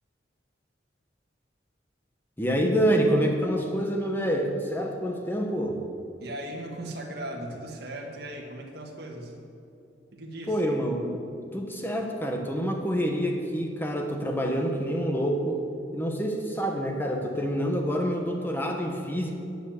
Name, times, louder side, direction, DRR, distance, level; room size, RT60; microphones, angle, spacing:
voice 1, 2.4-5.8 10.5-11.2 11.5-15.6 15.9-19.3, equal, 10° left, 2 dB, 1.2 m, -27 dB
voice 2, 6.2-9.4 10.1-10.6, right 1 dB, 55° right, 0 dB, 1.8 m, -38 dB
10.0 x 9.2 x 7.3 m, 2.7 s
head